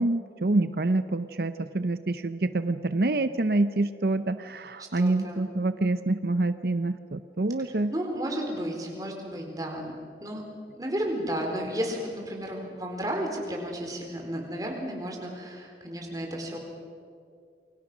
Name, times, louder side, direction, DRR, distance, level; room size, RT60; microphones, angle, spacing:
voice 1, 0.0-7.9, right 2 dB, 60° right, 11 dB, 0.7 m, -26 dB
voice 2, 5.0-5.5 7.9-9.9 10.2-10.4 10.8-16.6, equal, 20° right, 1 dB, 4.1 m, -33 dB
28.5 x 24.0 x 6.1 m, 2.3 s
head